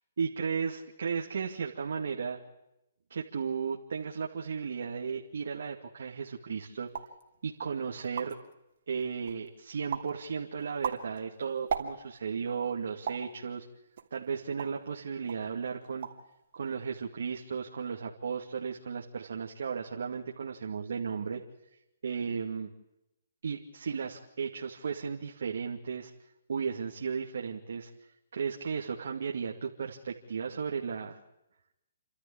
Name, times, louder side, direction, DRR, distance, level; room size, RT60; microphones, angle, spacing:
voice 1, 0.2-2.4 3.1-6.9 7.4-8.4 8.9-13.7 14.1-16.1 16.5-21.4 22.0-22.7 23.4-26.1 26.5-27.9 28.3-31.2, right 6 dB, 70° right, 0 dB, 2.4 m, -35 dB
sound 1, 6.9-7.2 7.7-7.8 8.0-8.5 9.0-9.5 9.9-10.2 10.6-12.3 13.1-13.3 14.0-14.9 15.3-15.5 15.8-16.3 16.6-17.1, right 7 dB, 55° right, 2.9 m, -37 dB
30.0 x 13.0 x 8.7 m, 0.88 s
hypercardioid pair, 155°, 0 cm